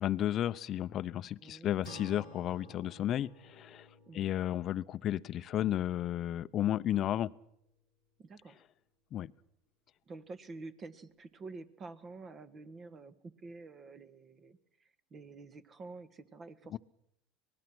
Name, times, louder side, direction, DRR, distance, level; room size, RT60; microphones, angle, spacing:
voice 1, 0.0-3.9 4.1-7.3 9.1-9.3 16.7-16.8, left 12 dB, 45° left, 0.8 m, -33 dB
voice 2, 1.4-1.8 4.1-4.3 8.2-8.6 10.1-16.8, right 3 dB, 35° right, 1.8 m, -49 dB
Acoustic guitar / Strum, 1.8-6.6, left 1 dB, 90° right, 5.6 m, -54 dB
25.5 x 20.0 x 6.2 m
supercardioid pair, 105°, 0 cm